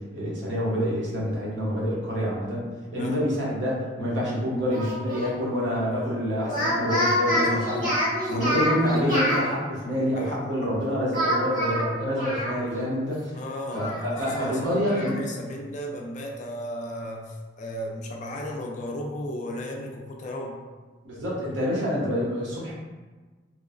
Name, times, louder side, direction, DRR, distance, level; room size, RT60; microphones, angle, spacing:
voice 1, 0.1-7.9 8.3-13.3 13.7-15.2 21.0-22.7, equal, 75° right, -6 dB, 0.8 m, -27 dB
Speech, 4.7-5.3 6.4-9.4 11.1-12.9 13.2-13.3 13.7-15.1, equal, 45° right, 1.2 m, -27 dB
voice 2, 13.3-17.3 17.6-19.9 20.2-20.6, left 1 dB, 40° left, 0 dB, 0.3 m, -35 dB
2.9 x 2.0 x 2.4 m, 1.3 s
head